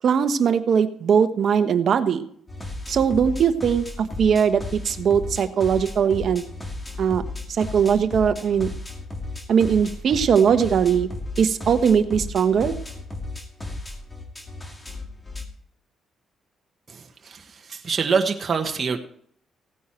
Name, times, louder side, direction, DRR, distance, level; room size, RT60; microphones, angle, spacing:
voice 1, 0.0-2.3 2.9-6.4 7.0-7.2 7.5-8.7 9.5-11.1 11.4-12.7, right 7 dB, 60° right, 9 dB, 1.3 m, -20 dB
sound 1, 2.5-15.4, left 2 dB, 20° left, 2.4 m, -34 dB
voice 2, 17.7-19.0, right 5 dB, 40° right, 3 dB, 1.6 m, -23 dB
17.0 x 9.5 x 4.6 m, 0.63 s
cardioid pair, 90°, 0 cm